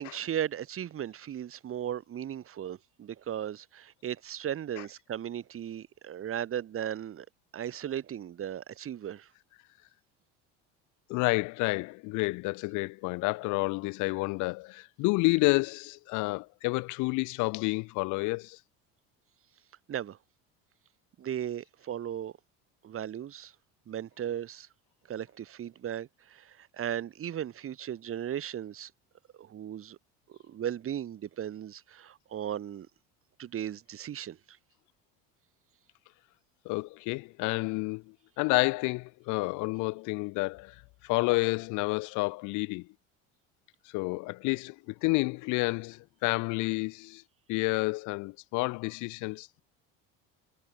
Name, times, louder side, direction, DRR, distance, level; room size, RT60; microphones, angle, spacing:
voice 1, 0.0-7.2 7.5-9.3 19.9-20.2 21.2-22.3 22.8-23.5 23.9-24.7 25.1-28.9 29.3-30.0 30.3-32.9 33.4-34.6, right 10 dB, 40° right, 3.2 m, -36 dB
voice 2, 11.1-18.6 36.7-38.0 38.4-40.7 41.0-42.9 43.9-47.2 47.5-49.6, left 25 dB, 65° left, 0.5 m, -29 dB
supercardioid pair, 105°, 33 cm